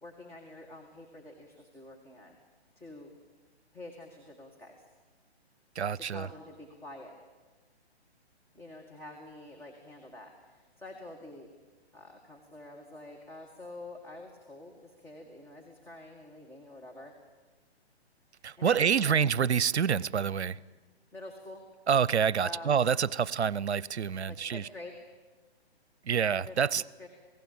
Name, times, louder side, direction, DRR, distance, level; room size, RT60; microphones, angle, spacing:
voice 1, 0.0-2.4 2.8-3.1 3.7-4.9 5.9-7.1 8.5-11.5 11.9-17.1 18.3-19.1 21.1-21.6 22.4-22.9 24.3-24.9 26.5-26.6 27.0-27.1, left 1 dB, 5° left, -1 dB, 1.9 m, -47 dB
voice 2, 5.8-6.3 18.4-20.6 21.9-24.7 26.1-26.8, right 7 dB, 85° right, 23 dB, 0.7 m, -27 dB
27.5 x 18.0 x 8.8 m, 1.4 s
hypercardioid pair, 145°, 32 cm